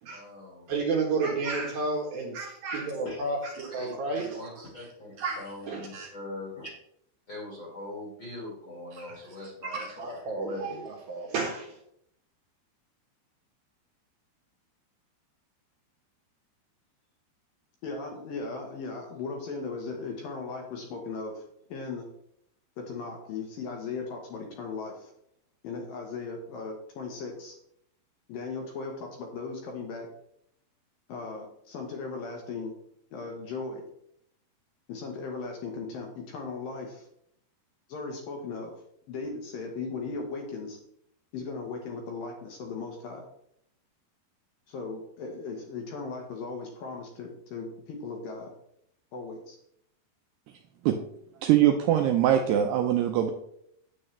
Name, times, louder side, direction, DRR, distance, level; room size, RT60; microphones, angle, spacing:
voice 1, 0.1-0.7 3.0-3.2 3.7-3.9 4.3-6.7 7.3-10.9, left 2 dB, 40° left, -3 dB, 1.8 m, -41 dB
voice 2, 0.7-4.6 5.2-6.1 8.9-9.2 9.6-11.8, right 3 dB, 65° right, -1 dB, 2.6 m, -32 dB
voice 3, 17.8-21.4 21.7-22.1 22.8-25.1 25.6-27.6 28.3-30.1 31.1-32.7 33.1-33.8 34.9-37.1 37.9-38.7 39.1-40.8 41.3-43.2 44.7-48.5 49.1-49.6, left 4 dB, 70° left, 1 dB, 2.2 m, -37 dB
voice 4, 51.4-53.3, right 11 dB, 85° right, 5 dB, 2.3 m, -22 dB
9.8 x 8.6 x 3.3 m, 0.72 s
omnidirectional pair, 5.5 m